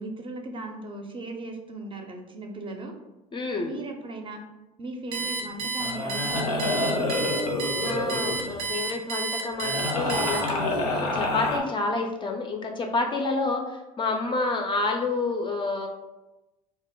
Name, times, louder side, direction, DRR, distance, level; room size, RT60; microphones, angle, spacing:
voice 1, 0.0-2.9 3.6-4.4 4.8-7.0, right 2 dB, 30° right, 3 dB, 0.5 m, -37 dB
voice 2, 3.3-3.7 7.8-15.9, left 3 dB, 25° left, 3 dB, 0.4 m, -29 dB
sound 1, 5.1-5.4 5.8-8.7 9.6-11.6, left 2 dB, 85° left, 0.5 m, -28 dB
Alarm, 5.1-10.8, right 4 dB, 80° right, 0.5 m, -31 dB
2.1 x 2.0 x 3.6 m, 1.0 s
hypercardioid pair, 65°, 18 cm